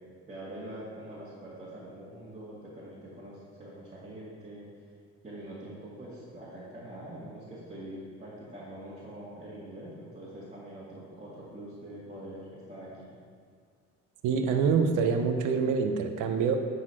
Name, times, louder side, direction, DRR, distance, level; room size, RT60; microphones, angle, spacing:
voice 1, 0.3-4.7 5.2-13.1, right 1 dB, 25° right, -8 dB, 1.9 m, -44 dB
voice 2, 14.2-16.6, right 5 dB, 80° right, 6 dB, 0.7 m, -26 dB
9.7 x 4.0 x 4.7 m, 2.1 s
cardioid pair, 90°, 31 cm